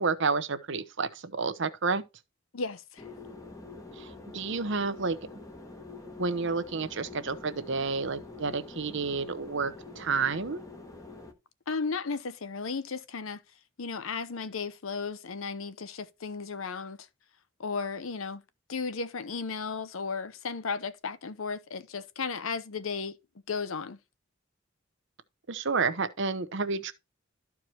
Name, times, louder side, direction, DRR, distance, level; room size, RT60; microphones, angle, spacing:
voice 1, 0.0-2.0 4.0-5.2 6.2-10.6 25.5-26.9, right 4 dB, 65° right, 0.9 m, -30 dB
voice 2, 2.5-3.0 11.7-13.4 13.8-17.1 17.6-18.4 18.7-23.2 23.5-24.0, left 4 dB, 90° left, 0.8 m, -34 dB
sound 1, 3.0-11.3, left 3 dB, 15° left, 1.2 m, -46 dB
13.0 x 4.8 x 2.9 m
head